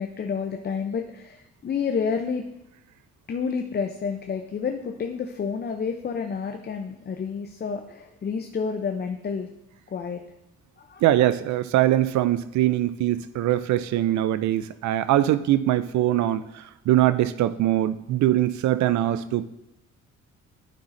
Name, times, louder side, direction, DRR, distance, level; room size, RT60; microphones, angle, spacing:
voice 1, 0.0-2.4 3.3-9.5 9.9-10.2 10.8-11.0, left 6 dB, 35° left, 4 dB, 0.6 m, -29 dB
voice 2, 11.0-19.5, right 13 dB, 70° right, 14 dB, 0.4 m, -22 dB
11.5 x 5.5 x 2.6 m, 0.89 s
cardioid pair, 90°, 30 cm